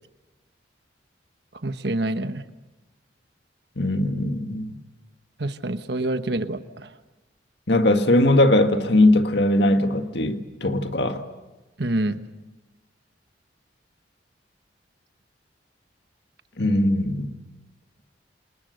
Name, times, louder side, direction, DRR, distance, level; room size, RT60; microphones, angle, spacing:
voice 1, 1.6-2.4 5.4-6.9 11.8-12.2, right 1 dB, 60° right, 1.2 m, -26 dB
voice 2, 3.8-4.7 7.7-11.2 16.6-17.3, left 1 dB, 60° left, 1.9 m, -20 dB
28.0 x 27.5 x 6.7 m
head